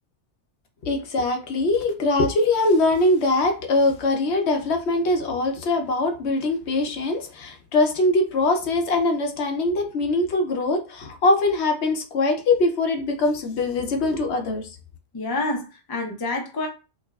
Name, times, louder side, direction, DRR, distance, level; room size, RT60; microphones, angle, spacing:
voice 1, 0.8-14.7, left 2 dB, 70° left, 0.9 m, -22 dB
voice 2, 15.1-16.7, left 2 dB, 25° left, 0.5 m, -28 dB
4.7 x 2.3 x 2.3 m
omnidirectional pair, 1.2 m